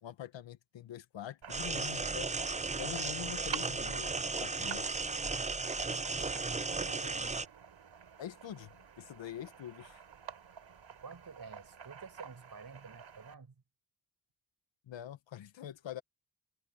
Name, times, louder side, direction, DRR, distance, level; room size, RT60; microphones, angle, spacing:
voice 1, 0.0-2.3 2.8-4.9 8.2-10.0 14.9-16.0, left 11 dB, 90° left, 1.0 m, -45 dB
sound 1, 1.4-13.3, right 8 dB, 85° right, 4.2 m, -49 dB
sound 2, 1.5-7.5, right 3 dB, 15° right, 0.5 m, -35 dB
voice 2, 6.2-7.4 11.0-13.6, right 5 dB, 55° right, 6.6 m, -50 dB
cardioid pair, 60°, 43 cm